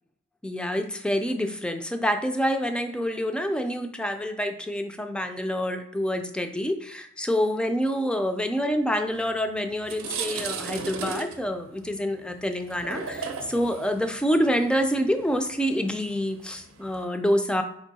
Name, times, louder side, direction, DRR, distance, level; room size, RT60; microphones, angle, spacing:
voice 1, 0.4-17.6, equal, 5° left, 7 dB, 0.3 m, -27 dB
sound 1, 9.2-9.4 9.7-17.0, right 4 dB, 70° right, 0.6 m, -36 dB
4.4 x 2.9 x 4.1 m, 0.73 s
head